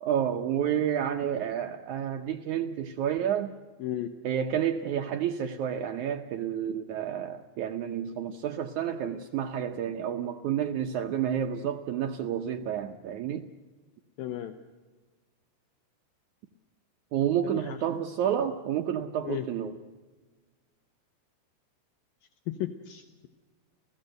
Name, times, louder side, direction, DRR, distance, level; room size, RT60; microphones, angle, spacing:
voice 1, 0.0-3.6 4.2-13.5 17.1-19.8, right 9 dB, 90° right, 1.6 m, -30 dB
voice 2, 3.8-4.1 14.2-14.6 17.6-17.8 19.2-19.5 22.5-23.3, left 12 dB, 75° left, 2.4 m, -34 dB
29.5 x 16.0 x 7.8 m
omnidirectional pair, 4.6 m